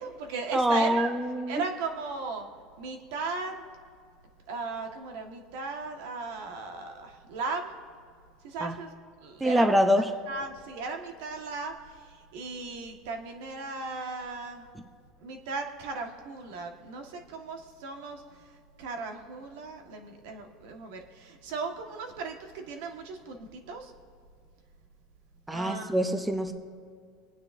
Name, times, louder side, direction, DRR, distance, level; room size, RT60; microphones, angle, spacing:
voice 1, 0.0-1.1 1.5-2.5 2.8-3.6 4.5-7.7 8.4-8.9 9.2-9.7 10.3-11.7 12.1-14.6 15.2-18.2 18.8-23.9 25.5-25.9, right 4 dB, 75° right, 4 dB, 1.6 m, -36 dB
voice 2, 0.5-1.6 8.6-8.8 9.4-10.1 25.5-26.5, equal, 5° right, 7 dB, 0.7 m, -25 dB
25.0 x 9.6 x 2.7 m, 2.1 s
supercardioid pair, 135°, 0 cm